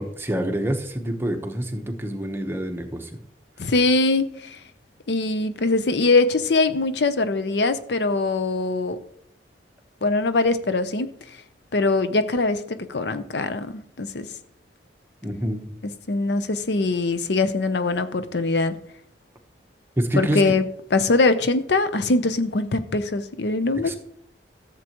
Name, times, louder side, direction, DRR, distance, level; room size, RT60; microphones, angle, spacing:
voice 1, 0.0-3.1 3.6-3.7 15.2-15.8 20.0-20.4 23.8-23.9, right 1 dB, 15° right, 4 dB, 1.0 m, -27 dB
voice 2, 3.6-4.6 5.1-9.0 10.0-11.1 11.7-12.6 12.9-14.3 16.1-18.7 20.2-20.6 20.9-23.9, left 3 dB, 65° left, 11 dB, 0.7 m, -22 dB
14.0 x 7.5 x 3.0 m, 0.69 s
head